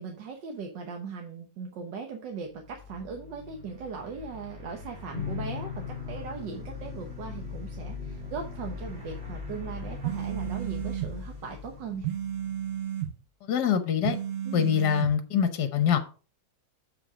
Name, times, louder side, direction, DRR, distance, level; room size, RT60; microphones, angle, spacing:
voice 1, 0.0-12.1 14.4-14.7, right 5 dB, 80° right, 1.7 m, -39 dB
sound 1, 2.5-12.7, left 3 dB, 35° right, 2.4 m, -42 dB
sound 2, 5.1-12.8, left 8 dB, 50° left, 1.1 m, -42 dB
sound 3, 10.0-11.1 12.0-13.1 14.0-15.1, right 10 dB, 55° right, 1.0 m, -32 dB
voice 2, 13.4-14.2 14.5-16.0, left 8 dB, 70° left, 1.5 m, -24 dB
7.8 x 4.9 x 4.9 m
omnidirectional pair, 1.9 m